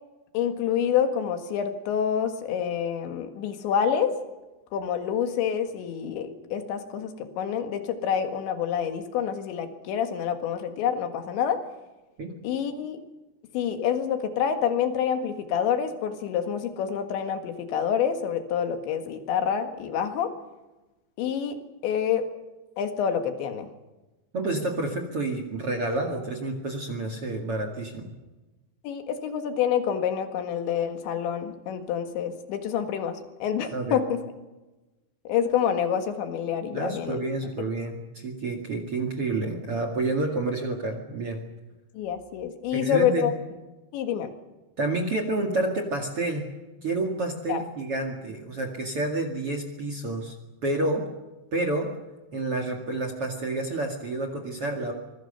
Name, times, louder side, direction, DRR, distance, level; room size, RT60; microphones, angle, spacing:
voice 1, 0.3-4.1 4.7-11.6 12.4-13.0 13.5-20.3 21.2-21.6 21.8-22.3 22.8-23.7 28.8-34.2 35.3-37.2 42.0-43.3 43.9-44.3 47.5-47.6, left 8 dB, 85° left, 7 dB, 4.1 m, -27 dB
voice 2, 24.3-28.1 33.7-34.0 36.7-41.4 42.7-43.3 44.8-46.5 46.8-50.4 50.6-51.0 51.5-51.9 52.3-54.9, right 2 dB, 40° right, 5 dB, 2.4 m, -29 dB
25.5 x 21.5 x 6.8 m, 1.1 s
omnidirectional pair, 5.0 m